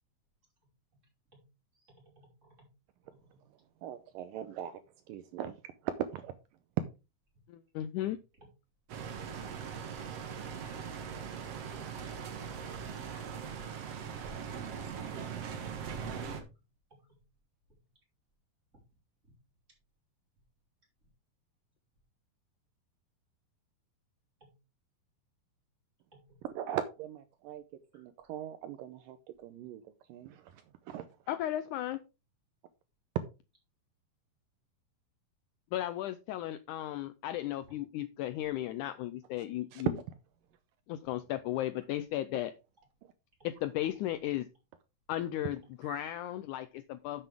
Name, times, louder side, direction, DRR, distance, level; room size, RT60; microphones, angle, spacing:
voice 1, 1.8-2.7 3.2-3.3 11.8-11.9 16.9-17.2 24.4-24.5 26.1-26.4 27.9-28.0, right 1 dB, 20° right, 5.5 m, -62 dB
voice 2, 3.8-4.8 5.1-5.6 5.8-6.3 6.8-6.9 26.4-27.6 27.9-29.8 30.1-31.1 39.7-39.8 45.8-46.0, right 10 dB, 75° right, 2.2 m, -39 dB
voice 3, 7.5-8.2 31.3-32.0 35.7-39.9 40.9-42.5 43.4-44.5 45.1-47.3, left 13 dB, 90° left, 1.7 m, -35 dB
sound 1, 8.9-16.4, right 7 dB, 55° right, 2.1 m, -40 dB
11.0 x 7.7 x 3.6 m
omnidirectional pair, 4.2 m